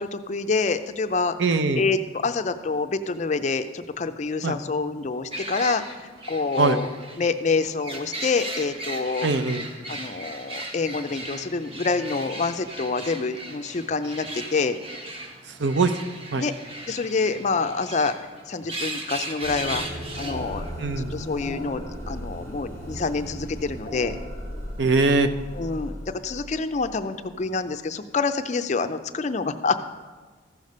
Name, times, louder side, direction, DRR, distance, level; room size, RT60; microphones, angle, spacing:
voice 1, 0.0-1.4 1.7-5.8 6.3-6.9 7.2-9.3 9.9-14.8 16.4-16.5 16.9-18.1 18.5-19.8 20.2-20.7 21.0-24.2 25.5-26.0 26.2-29.8, left 4 dB, 35° left, 10 dB, 0.4 m, -27 dB
voice 2, 1.4-1.8 4.4-4.6 6.6-6.8 9.2-9.6 15.6-15.9 16.3-16.4 20.8-21.3 24.8-25.3, right 3 dB, 65° right, 10 dB, 0.6 m, -22 dB
sound 1, 5.3-20.7, right 2 dB, 30° right, 1.0 m, -37 dB
sound 2, 19.4-27.3, equal, 45° right, 2.8 m, -36 dB
14.5 x 6.6 x 5.3 m, 1.3 s
head